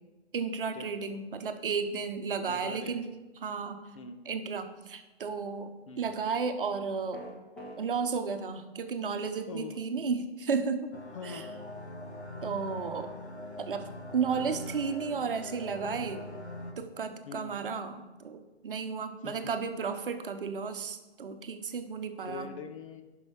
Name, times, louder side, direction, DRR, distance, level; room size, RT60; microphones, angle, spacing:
voice 1, 0.3-3.1 3.4-3.9 4.3-7.2 7.8-10.9 11.2-11.5 12.4-13.1 13.6-16.2 16.8-22.5, right 5 dB, 55° right, 8 dB, 1.0 m, -33 dB
voice 2, 2.5-3.0 3.9-4.3 5.9-6.1 9.5-9.7 11.1-11.6 17.3-17.7 19.2-19.5 22.2-23.0, left 5 dB, 30° left, 7 dB, 0.6 m, -43 dB
sound 1, 7.1-7.8, equal, 5° left, 1.2 m, -43 dB
sound 2, 10.9-16.7, left 1 dB, 90° left, 1.4 m, -42 dB
10.5 x 5.6 x 4.8 m, 1.1 s
figure-of-eight pair, 135°, 32 cm